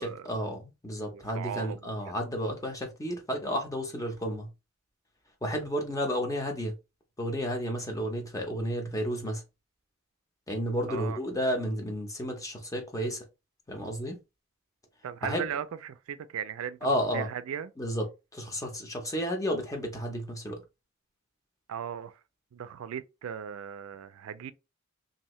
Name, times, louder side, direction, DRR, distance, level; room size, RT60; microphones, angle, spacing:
voice 1, 0.0-4.5 5.4-6.7 7.2-9.4 10.5-13.2 13.7-14.2 15.3-15.5 16.8-17.3 17.8-18.0 18.3-20.6, equal, 15° left, 0.7 m, -32 dB
voice 2, 1.1-2.1 10.9-11.2 15.0-16.8 17.1-17.7 21.7-22.2 22.5-24.5, right 8 dB, 75° right, 0.3 m, -37 dB
2.8 x 2.7 x 3.0 m
head